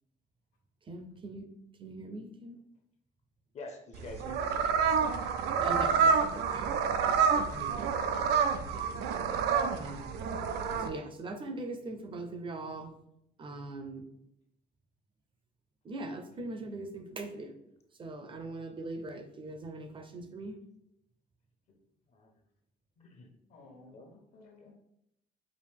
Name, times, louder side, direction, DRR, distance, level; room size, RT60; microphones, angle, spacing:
voice 1, 0.9-1.5 1.8-2.6 5.6-6.7 7.0-7.9 8.7-8.9 9.8-10.2 10.8-12.9 13.4-14.0 15.8-17.5 18.0-20.6, right 2 dB, 30° right, 7 dB, 0.6 m, -41 dB
voice 2, 3.5-5.3 22.1-22.3 23.0-23.3 23.7-24.1 24.6-24.7, left 2 dB, 40° left, 4 dB, 0.7 m, -47 dB
sound 1, 3.9-10.9, right 6 dB, 80° right, 0.5 m, -28 dB
voice 3, 23.5-24.7, left 3 dB, 65° left, -4 dB, 1.1 m, -56 dB
5.0 x 2.5 x 3.5 m, 0.78 s
cardioid pair, 110°, 17 cm